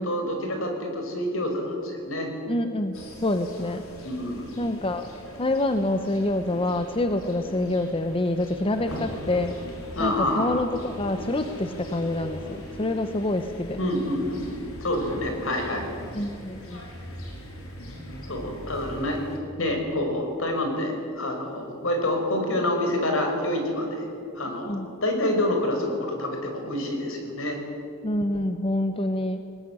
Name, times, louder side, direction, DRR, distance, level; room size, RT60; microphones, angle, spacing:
voice 1, 0.0-2.3 4.0-4.5 10.0-10.6 13.8-15.9 18.3-19.2 19.6-24.1 24.4-24.8 25.0-27.6, left 1 dB, 65° left, 3 dB, 5.3 m, -27 dB
voice 2, 2.5-3.0 3.2-3.8 4.6-5.1 5.4-9.6 10.0-13.8 16.1-16.8 24.6-24.9 28.0-29.5, left 1 dB, 25° left, 8 dB, 1.0 m, -26 dB
sound 1, 2.9-19.4, equal, 85° left, 5.4 m, -40 dB
20.5 x 20.0 x 9.8 m, 2.7 s
head